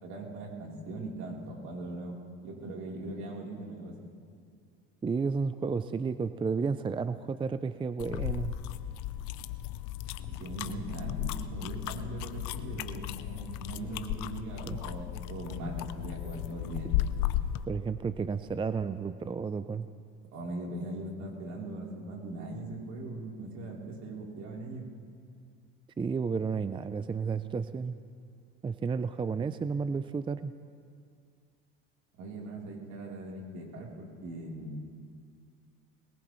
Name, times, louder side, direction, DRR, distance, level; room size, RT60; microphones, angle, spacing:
voice 1, 0.0-2.2 2.4-4.0 10.3-16.9 20.3-24.8 32.2-35.1, right 2 dB, 65° right, -2 dB, 3.7 m, -40 dB
voice 2, 5.0-8.5 14.7-14.8 17.7-19.9 26.0-27.9 28.6-30.5, right 5 dB, 15° right, 12 dB, 0.5 m, -32 dB
sound 1, 8.0-17.7, left 13 dB, 70° left, 0.7 m, -35 dB
21.5 x 19.5 x 3.2 m, 2.2 s
supercardioid pair, 85°, 30 cm